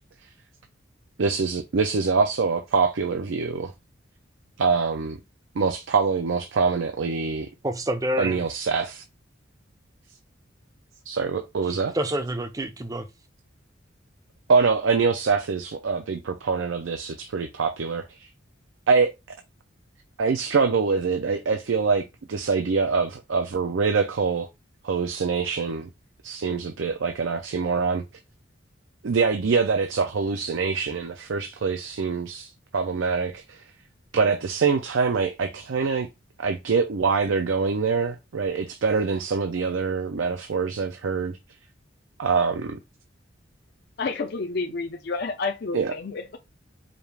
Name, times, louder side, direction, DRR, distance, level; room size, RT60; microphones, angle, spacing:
voice 1, 1.2-3.7 4.6-5.2 5.6-7.5 8.2-9.0 11.1-11.9 14.5-18.3 18.9-19.1 20.2-24.5 24.8-25.9 26.2-28.0 29.0-33.6 34.1-36.1 36.4-41.4 42.2-42.8 45.7-45.9, right 5 dB, 75° right, 0.5 m, -24 dB
voice 2, 7.6-8.4 11.6-13.1, right 1 dB, 15° right, 0.4 m, -28 dB
voice 3, 44.0-46.4, left 4 dB, 50° left, 0.5 m, -30 dB
5.1 x 2.4 x 3.3 m
head